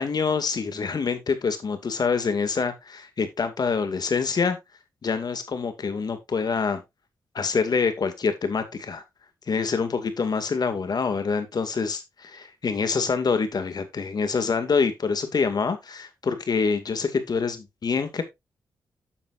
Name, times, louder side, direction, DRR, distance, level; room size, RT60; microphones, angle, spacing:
voice 1, 0.0-4.6 5.0-6.8 7.3-9.0 9.5-18.2, left 5 dB, 55° left, 2.2 m, -26 dB
11.0 x 7.4 x 2.5 m
supercardioid pair, 45°, 8 cm